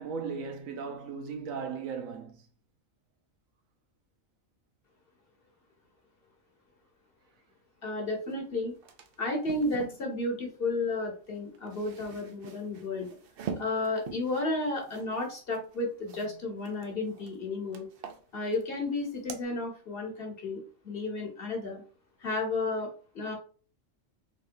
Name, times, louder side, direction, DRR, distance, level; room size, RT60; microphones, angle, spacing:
voice 1, 0.0-2.4, right 5 dB, 90° right, 1.2 m, -37 dB
voice 2, 7.8-8.7 9.2-13.1 13.6-17.9 18.3-21.8 22.2-22.9 23.1-23.4, left 2 dB, 50° left, 1.3 m, -32 dB
sound 1, 8.3-8.4 8.7-10.0 11.4-16.3 16.6-17.4 17.7-18.7 19.0-19.4, right 6 dB, 60° right, 0.6 m, -44 dB
3.7 x 3.4 x 2.6 m
omnidirectional pair, 1.4 m